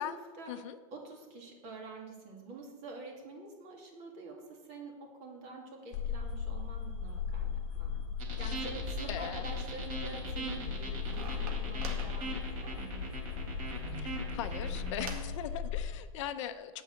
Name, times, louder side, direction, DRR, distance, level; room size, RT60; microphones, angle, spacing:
voice 1, 0.0-0.5 0.9-8.0 8.4-12.9, right 3 dB, 35° right, 0 dB, 2.4 m, -47 dB
sound 1, 5.9-16.0, left 6 dB, 35° left, 1.3 m, -37 dB
sound 2, 8.2-14.9, right 2 dB, 70° right, 3.7 m, -41 dB
voice 2, 9.1-9.4 14.0-16.8, left 10 dB, 55° left, 10 dB, 0.6 m, -39 dB
sound 3, 10.2-15.4, right 3 dB, 85° right, 2.0 m, -48 dB
9.0 x 5.5 x 7.7 m, 1.3 s
supercardioid pair, 160°, 18 cm